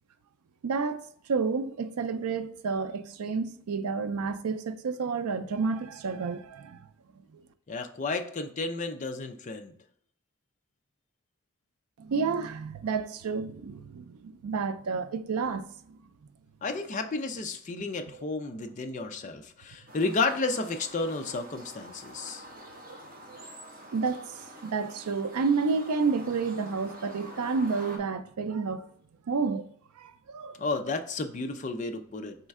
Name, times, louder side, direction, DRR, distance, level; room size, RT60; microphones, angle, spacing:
voice 1, 0.6-1.0 1.3-6.8 12.0-15.7 19.0-19.1 22.6-23.0 23.3-23.4 23.9-24.3 24.6-28.9 29.3-29.7 30.0-30.6, right 5 dB, 80° right, 0.4 m, -30 dB
voice 2, 7.7-9.7 16.6-22.4 30.6-32.4, left 3 dB, 35° left, 0.4 m, -32 dB
sound 1, 19.9-28.0, equal, 40° right, 1.0 m, -47 dB
4.3 x 3.2 x 3.6 m
head